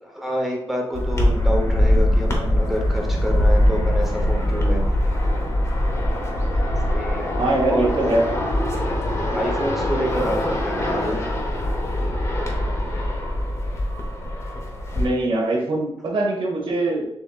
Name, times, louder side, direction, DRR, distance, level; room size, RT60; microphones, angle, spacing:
voice 1, 0.0-4.9 6.9-7.3 7.7-7.9 9.3-11.2, equal, ahead, -1 dB, 0.9 m, -27 dB
sound 1, 0.9-15.0, left 1 dB, 25° left, 0.8 m, -22 dB
voice 2, 7.4-8.2 14.9-17.2, right 2 dB, 55° right, -3 dB, 1.3 m, -22 dB
6.8 x 2.8 x 2.4 m, 0.79 s
wide cardioid pair, 165°, 11 cm